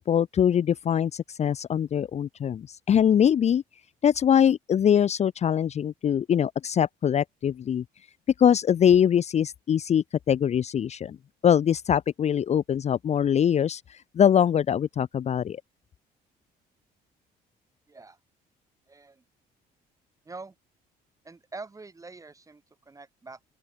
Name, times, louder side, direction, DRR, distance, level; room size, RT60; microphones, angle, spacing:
voice 1, 0.0-3.6 4.0-7.8 8.4-11.2 11.4-15.6, left 9 dB, 40° left, 0.8 m, -23 dB
voice 2, 18.9-19.2 20.2-20.5 21.2-23.5, right 3 dB, 20° right, 7.5 m, -44 dB
open air
cardioid pair, 110°, 17 cm